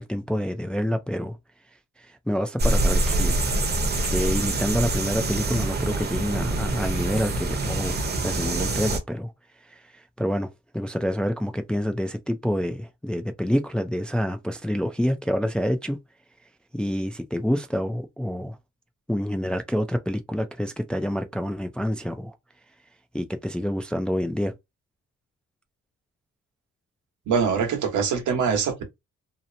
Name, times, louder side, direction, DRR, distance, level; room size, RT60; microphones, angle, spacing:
voice 1, 0.0-1.4 2.0-3.4 4.0-9.3 9.7-16.0 16.7-18.6 19.1-22.4 23.1-24.5, equal, 5° left, 0.3 m, -27 dB
sound 1, 2.6-9.0, right 2 dB, 35° right, 0.8 m, -25 dB
voice 2, 27.3-28.8, right 6 dB, 75° right, 1.0 m, -23 dB
2.8 x 2.0 x 2.5 m
cardioid pair, 90°, 30 cm